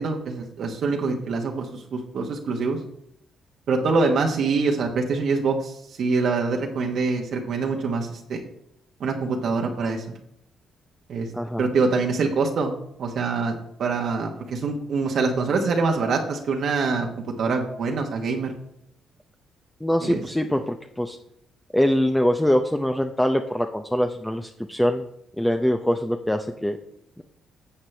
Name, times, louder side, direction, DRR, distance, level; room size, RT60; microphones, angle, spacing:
voice 1, 0.0-2.8 3.7-5.7 6.0-8.4 9.0-10.2 11.1-11.3 11.6-12.7 13.0-17.1 17.4-18.5 20.0-20.2, right 4 dB, 65° right, 2 dB, 1.2 m, -24 dB
voice 2, 11.3-11.7 19.8-21.2 21.7-25.1 25.4-26.8, equal, 5° left, 5 dB, 0.6 m, -23 dB
11.5 x 7.3 x 3.3 m, 0.75 s
cardioid pair, 90°, 0 cm